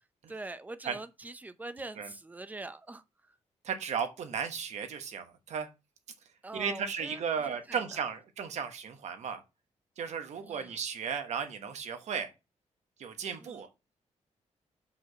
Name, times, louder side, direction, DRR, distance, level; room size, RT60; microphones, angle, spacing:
voice 1, 0.3-3.0 6.4-7.2 7.5-7.8 10.4-10.8 13.4-13.6, right 2 dB, 15° right, 0.6 m, -43 dB
voice 2, 3.6-5.7 6.5-9.4 10.0-12.3 13.0-13.7, right 6 dB, 65° right, 1.3 m, -35 dB
5.6 x 4.7 x 6.2 m
wide cardioid pair, 145°, 12 cm